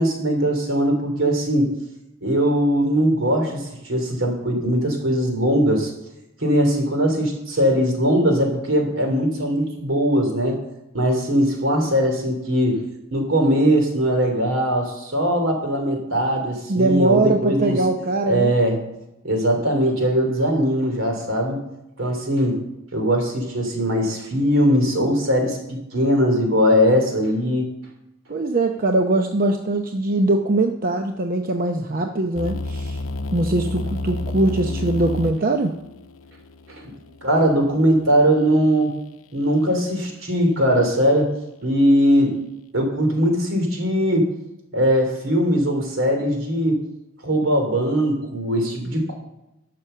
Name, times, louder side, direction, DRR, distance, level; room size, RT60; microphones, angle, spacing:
voice 1, 0.0-1.7 2.2-5.9 6.4-10.6 10.9-12.8 13.1-17.8 18.3-18.8 19.2-21.6 22.0-22.6 22.9-27.7 36.7-36.8 37.2-38.9 39.3-41.3 41.6-42.4 42.7-44.3 44.7-46.8 47.2-49.1, equal, 70° right, 3 dB, 3.1 m, -20 dB
voice 2, 16.7-18.5 28.3-33.0 33.3-35.7, right 2 dB, 45° right, 4 dB, 0.7 m, -21 dB
sound 1, 32.3-38.3, left 2 dB, 80° left, 0.7 m, -31 dB
12.0 x 6.8 x 6.8 m, 0.91 s
head